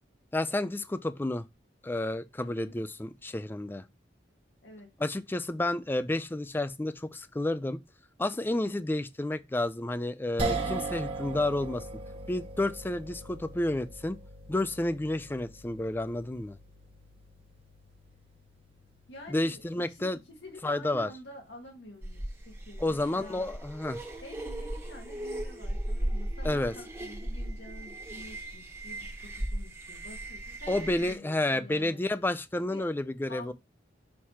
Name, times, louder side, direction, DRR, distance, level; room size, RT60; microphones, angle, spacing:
voice 1, 0.3-1.4 1.8-3.8 5.0-7.8 8.2-11.9 12.3-14.2 14.5-16.6 19.3-20.2 20.6-21.1 22.8-24.0 26.4-26.7 30.7-33.5, left 1 dB, 10° left, 0.4 m, -30 dB
voice 2, 2.4-2.8 4.6-4.9 19.1-23.5 24.2-32.0 32.5-32.9 33.3-33.5, left 1 dB, 80° left, 1.8 m, -48 dB
sound 1, 10.4-22.7, right 3 dB, 30° right, 1.2 m, -40 dB
sound 2, 22.0-31.1, right 1 dB, 15° right, 1.5 m, -37 dB
6.5 x 3.0 x 5.6 m
head